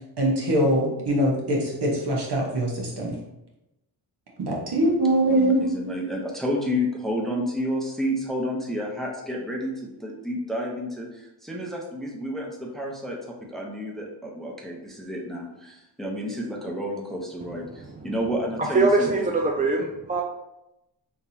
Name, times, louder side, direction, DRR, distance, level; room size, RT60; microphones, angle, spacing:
voice 1, 0.2-3.2 4.4-5.7, right 1 dB, 55° right, -2 dB, 1.2 m, -23 dB
voice 2, 5.3-13.2 13.5-19.3, equal, ahead, -1 dB, 0.7 m, -30 dB
voice 3, 18.7-20.2, right 3 dB, 20° right, 1 dB, 0.3 m, -22 dB
3.6 x 2.9 x 2.8 m, 0.90 s
supercardioid pair, 55°, 48 cm